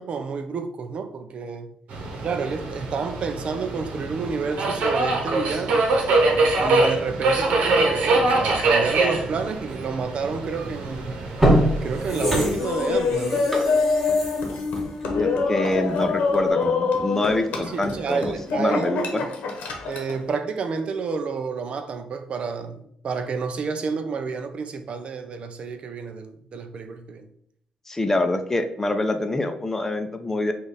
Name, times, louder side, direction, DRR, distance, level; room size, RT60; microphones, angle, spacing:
voice 1, 0.0-1.7 2.2-5.9 6.6-11.2 11.8-13.5 17.5-19.3 19.9-27.3, right 5 dB, 50° right, 0.5 m, -29 dB
Subway metro underground, 1.9-12.4, right 2 dB, 85° right, 1.0 m, -24 dB
sound 1, 10.6-10.8 11.2-15.9 16.3-16.4, right 1 dB, 5° right, 1.5 m, -25 dB
Laughter, 12.1-20.2, left 4 dB, 80° left, 1.0 m, -25 dB
voice 2, 15.2-19.2 27.9-30.5, left 2 dB, 15° left, 0.5 m, -26 dB
5.0 x 2.5 x 4.0 m
cardioid pair, 110°, 2 cm